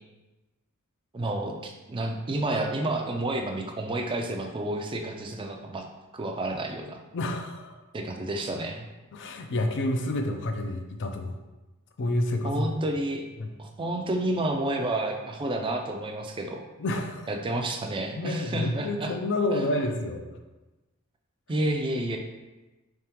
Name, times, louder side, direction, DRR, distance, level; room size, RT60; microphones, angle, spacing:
voice 1, 1.1-5.9 6.1-7.0 7.9-8.9 12.4-13.3 13.6-16.6 17.3-19.1 19.5-19.6 21.5-22.2, right 1 dB, 25° right, 3 dB, 0.4 m, -30 dB
voice 2, 7.1-7.8 9.1-11.4 12.0-12.7 13.4-13.5 16.8-17.3 18.1-20.2, left 1 dB, 55° left, 5 dB, 0.4 m, -29 dB
3.7 x 3.5 x 2.9 m, 1.1 s
head